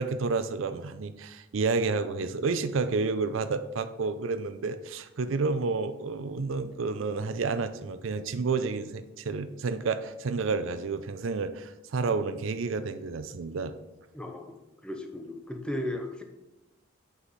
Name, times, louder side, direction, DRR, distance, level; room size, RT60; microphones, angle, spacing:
voice 1, 0.0-13.7, right 4 dB, 65° right, 11 dB, 0.5 m, -30 dB
voice 2, 14.1-16.2, left 1 dB, 5° left, 4 dB, 0.7 m, -36 dB
7.8 x 5.6 x 4.0 m, 1.0 s
head